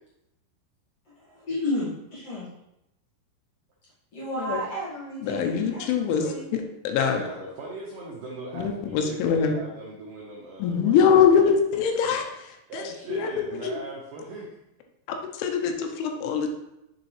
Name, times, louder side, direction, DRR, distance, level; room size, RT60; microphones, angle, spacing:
voice 1, 1.5-2.5 4.1-6.6, left 1 dB, 55° left, -9 dB, 1.7 m, -32 dB
voice 2, 4.6-4.9 6.2-6.3 7.1-11.0 11.3-11.5 12.7-14.5, right 3 dB, 80° right, -4 dB, 1.9 m, -39 dB
voice 3, 5.2-6.2 6.5-7.2 8.5-9.5 10.6-12.8 13.1-13.7 15.4-16.6, left 7 dB, 85° left, 4 dB, 3.2 m, -23 dB
7.2 x 6.7 x 3.2 m, 0.87 s
omnidirectional pair, 5.5 m